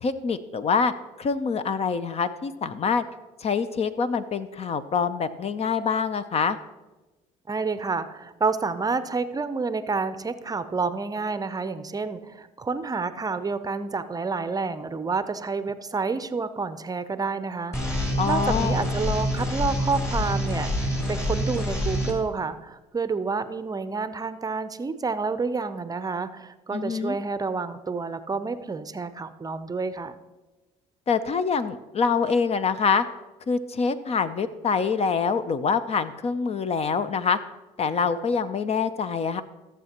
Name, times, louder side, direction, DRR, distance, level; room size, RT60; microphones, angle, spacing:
voice 1, 0.0-0.9 1.2-3.0 3.4-6.6 18.2-18.9 26.7-27.2 31.1-33.0 33.5-37.4 37.8-39.4, left 5 dB, 40° left, 13 dB, 0.6 m, -25 dB
voice 2, 7.5-30.2, right 4 dB, 25° right, 12 dB, 0.6 m, -29 dB
sound 1, 17.7-22.1, left 1 dB, 20° left, 3.2 m, -26 dB
15.0 x 7.3 x 2.9 m, 1.1 s
supercardioid pair, 70°, 16 cm